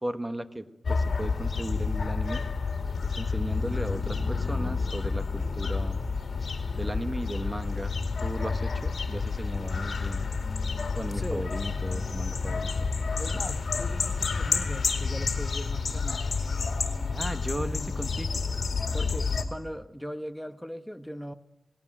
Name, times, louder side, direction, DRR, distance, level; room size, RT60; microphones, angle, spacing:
voice 1, 0.0-2.4 3.0-6.0 6.7-10.3 10.9-12.9 17.1-18.4, right 1 dB, 15° right, 10 dB, 1.3 m, -36 dB
sound 1, 0.8-19.4, left 4 dB, 70° left, 2.3 m, -29 dB
voice 2, 11.1-11.5 13.2-16.3 18.9-21.3, equal, 5° left, 10 dB, 1.0 m, -39 dB
19.5 x 17.0 x 8.8 m, 0.93 s
wide cardioid pair, 85°, 0 cm